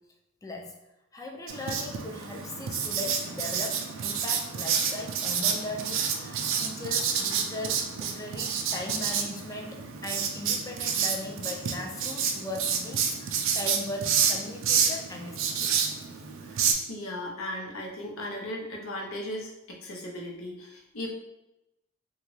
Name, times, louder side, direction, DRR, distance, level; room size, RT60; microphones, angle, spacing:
voice 1, 0.4-0.8 1.1-15.7, left 2 dB, 15° left, 1 dB, 0.3 m, -38 dB
Writing, 1.5-16.7, right 7 dB, 65° right, 0.4 m, -29 dB
voice 2, 16.4-21.1, left 1 dB, 80° left, -1 dB, 0.7 m, -37 dB
2.9 x 2.4 x 3.0 m, 0.92 s
head